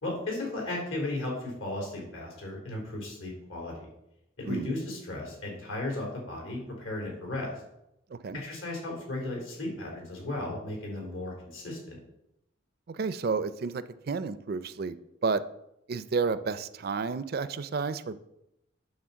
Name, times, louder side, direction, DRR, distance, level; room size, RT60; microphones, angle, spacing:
voice 1, 0.0-3.9 4.4-7.5 8.3-12.0, left 2 dB, 80° left, -1 dB, 3.6 m, -35 dB
voice 2, 12.9-15.0 15.2-15.4 15.9-18.2, right 4 dB, 50° right, 14 dB, 0.4 m, -31 dB
8.8 x 4.2 x 6.9 m, 0.84 s
head